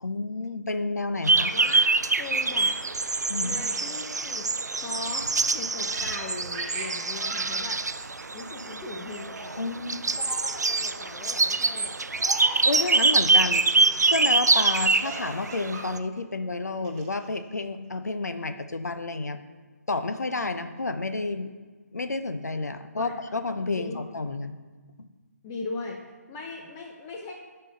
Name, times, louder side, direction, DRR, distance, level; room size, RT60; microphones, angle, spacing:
voice 1, 0.0-1.5 3.3-3.6 9.6-10.0 12.6-13.7 14.1-19.4 19.9-21.5 21.9-24.5 25.0-25.1, left 3 dB, 75° left, 9 dB, 0.7 m, -30 dB
sound 1, 1.2-16.0, right 3 dB, 85° right, 0.4 m, -25 dB
voice 2, 1.4-1.9 2.2-2.7 3.4-4.5 4.8-5.2 5.5-7.8 8.3-9.7 10.2-12.0 23.0-23.1 23.8-24.0 25.4-26.0 26.3-27.3, left 3 dB, 20° left, -1 dB, 0.7 m, -38 dB
Laughter, 5.9-9.0 9.4-9.7 10.0-10.6 11.1-11.4 12.1-13.1 14.5-15.9 16.2-16.3 16.8-17.4, right 3 dB, 20° right, 1.2 m, -39 dB
9.9 x 4.5 x 5.2 m, 1.4 s
figure-of-eight pair, 140°, 9 cm